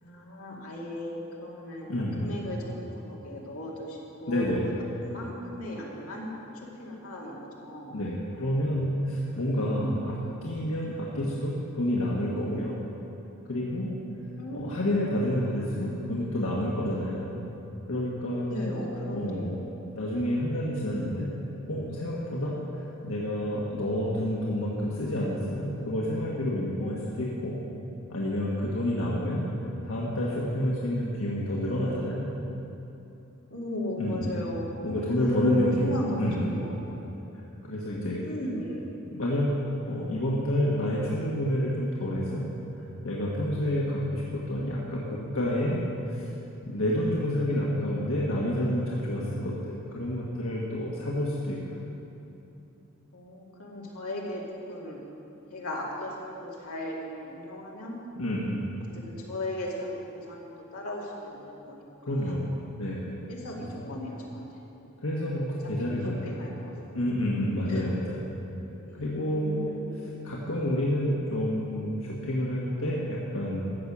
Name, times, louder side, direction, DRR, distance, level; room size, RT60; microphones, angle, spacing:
voice 1, 0.0-1.9 2.2-4.7 5.0-6.3 6.7-7.9 9.7-10.0 14.4-14.8 18.4-19.7 33.5-37.2 37.8-38.9 53.1-54.4 54.7-55.0 55.5-58.0 59.1-62.4 63.3-64.9 65.8-66.8 67.7-67.9 68.9-70.2, equal, 90° left, -3 dB, 2.5 m, -36 dB
voice 2, 1.9-2.3 4.3-4.8 7.9-12.8 13.5-13.9 14.5-17.3 17.9-18.5 19.1-19.6 19.9-21.3 21.7-27.5 28.1-29.5 29.8-32.3 34.0-34.3 34.8-35.9 36.2-36.5 37.3-38.2 39.1-42.5 43.0-46.3 46.6-51.8 58.1-58.7 62.0-62.4 62.8-63.1 63.5-63.6 65.0-66.3 66.9-68.2 68.9-69.7 70.2-73.6, left 1 dB, 70° left, -5 dB, 1.6 m, -29 dB
14.0 x 8.4 x 6.2 m, 2.8 s
head